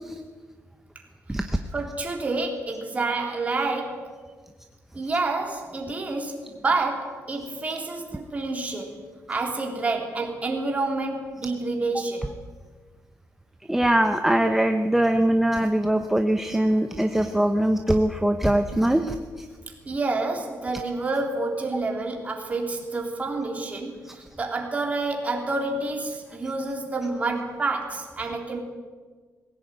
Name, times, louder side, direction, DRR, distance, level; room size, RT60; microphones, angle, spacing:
voice 1, 1.7-4.1 4.9-9.0 9.3-12.3 19.9-28.6, right 3 dB, 25° right, 1 dB, 3.6 m, -28 dB
voice 2, 13.7-19.5, right 1 dB, 5° right, 6 dB, 0.9 m, -22 dB
20.5 x 16.5 x 9.1 m, 1.4 s
cardioid pair, 150°, 6 cm